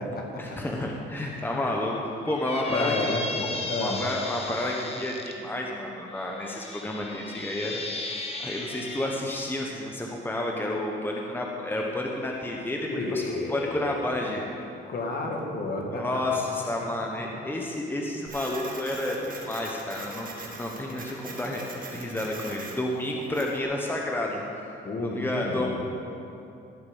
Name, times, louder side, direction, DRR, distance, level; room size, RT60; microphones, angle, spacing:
voice 1, 0.4-2.0 2.3-3.5 3.8-7.8 8.1-13.2 13.5-14.4 15.9-20.3 20.5-21.6 21.9-24.4 25.0-25.7, left 1 dB, 10° left, -1 dB, 1.2 m, -30 dB
Squeak, 2.3-5.3 6.2-9.2, left 2 dB, 30° left, 1.4 m, -36 dB
voice 2, 2.7-4.0 12.9-13.9 14.9-16.4 24.8-25.7, left 2 dB, 50° left, 0 dB, 2.2 m, -31 dB
Printer, 18.3-23.6, right 3 dB, 45° right, 1.9 m, -41 dB
15.5 x 6.8 x 5.5 m, 2.8 s
cardioid pair, 90°, 20 cm